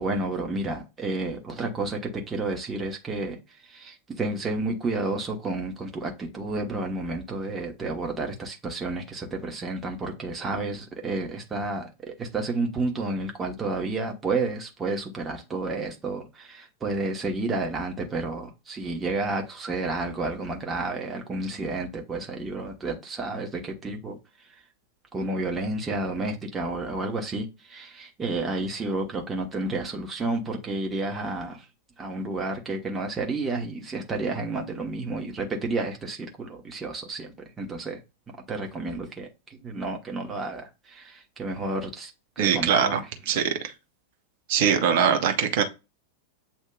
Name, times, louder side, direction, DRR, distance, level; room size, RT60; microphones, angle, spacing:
voice 1, 0.0-3.4 3.6-24.2 25.1-31.7 32.0-38.0 38.5-42.1 42.4-43.0, right 2 dB, 15° right, 1.2 m, -31 dB
voice 2, 42.4-43.0 43.3-43.7 44.5-45.6, right 7 dB, 50° right, 0.8 m, -22 dB
8.2 x 2.8 x 2.3 m
figure-of-eight pair, 90°, 0 cm